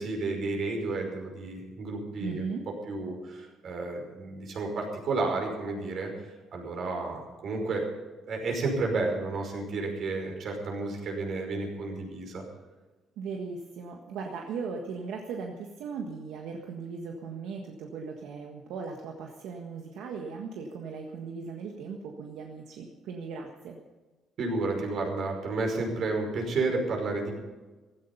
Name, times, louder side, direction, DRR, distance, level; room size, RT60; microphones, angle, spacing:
voice 1, 0.0-2.5 2.9-7.9 8.3-12.4 24.4-27.3, right 3 dB, 55° right, 1 dB, 5.4 m, -31 dB
voice 2, 2.2-2.6 13.2-23.8, right 5 dB, 80° right, 2 dB, 1.6 m, -38 dB
16.0 x 14.5 x 5.6 m, 1.2 s
cardioid pair, 125°, 0 cm